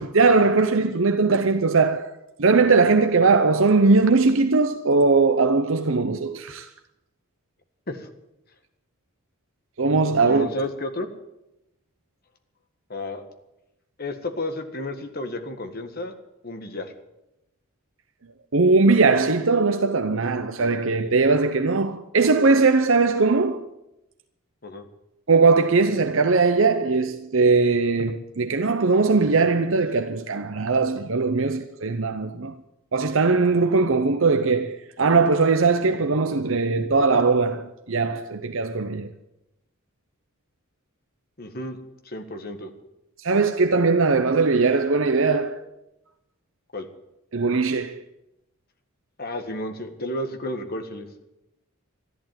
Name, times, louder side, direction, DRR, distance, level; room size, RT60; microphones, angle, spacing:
voice 1, 0.0-2.1 2.4-6.7 9.8-10.5 18.5-23.7 25.3-32.5 32.9-39.1 43.2-45.6 47.3-48.0, right 4 dB, 65° right, 0.8 m, -20 dB
voice 2, 10.3-11.1 12.9-13.2 14.0-16.1 16.4-16.9 24.6-24.8 41.4-41.8 42.0-42.7 46.7-46.9 49.2-51.3, left 1 dB, 45° left, 1.7 m, -32 dB
13.5 x 11.0 x 9.1 m
head